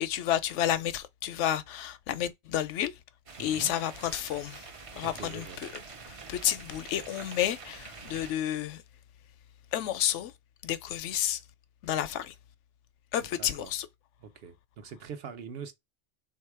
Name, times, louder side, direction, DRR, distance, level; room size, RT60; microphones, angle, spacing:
voice 1, 0.0-2.9 3.4-4.7 5.0-5.7 6.1-8.8 9.7-10.3 10.6-11.4 11.8-12.3 13.1-13.9, left 11 dB, 85° left, 0.9 m, -30 dB
sound 1, 3.3-8.3, right 4 dB, 40° right, 0.5 m, -46 dB
voice 2, 3.4-3.7 5.0-5.6 13.4-13.7 14.2-15.7, right 6 dB, 60° right, 0.9 m, -43 dB
3.5 x 2.8 x 4.5 m
omnidirectional pair, 1.2 m